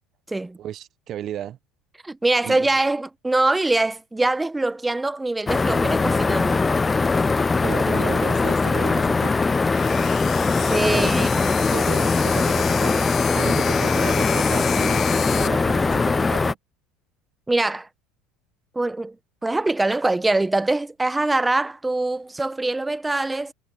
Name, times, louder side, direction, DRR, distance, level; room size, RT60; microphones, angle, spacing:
voice 1, 0.6-1.6 2.4-2.7 7.6-9.3 10.9-11.4 11.7-15.0 15.3-16.6, right 11 dB, 50° right, 1.1 m, -33 dB
voice 2, 2.0-6.7 10.7-11.5 17.5-17.9 18.7-19.2 19.4-23.5, right 2 dB, 10° right, 1.2 m, -23 dB
sound 1, 5.5-16.5, left 4 dB, 20° left, 0.4 m, -21 dB
sound 2, 9.7-15.5, left 9 dB, 40° left, 0.7 m, -31 dB
supercardioid pair, 95°, 0 cm